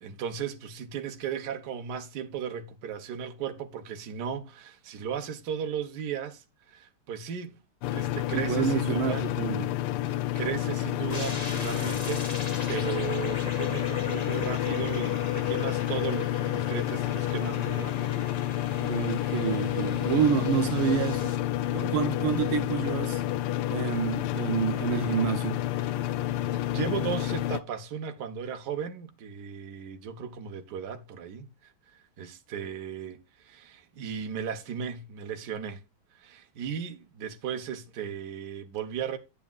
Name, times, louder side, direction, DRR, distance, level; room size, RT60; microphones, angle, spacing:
voice 1, 0.0-7.6 7.9-9.2 10.0-18.2 25.8-25.9 26.5-31.7 32.2-35.8 36.1-39.2, right 8 dB, 55° right, 1.5 m, -36 dB
sound 1, 7.8-27.6, left 13 dB, 90° left, 1.5 m, -29 dB
voice 2, 8.3-9.7 18.8-21.4 21.7-23.2 23.7-25.6, right 8 dB, 75° right, 1.5 m, -28 dB
sound 2, 11.1-21.4, left 3 dB, 25° left, 0.9 m, -41 dB
9.9 x 8.4 x 2.4 m
omnidirectional pair, 2.3 m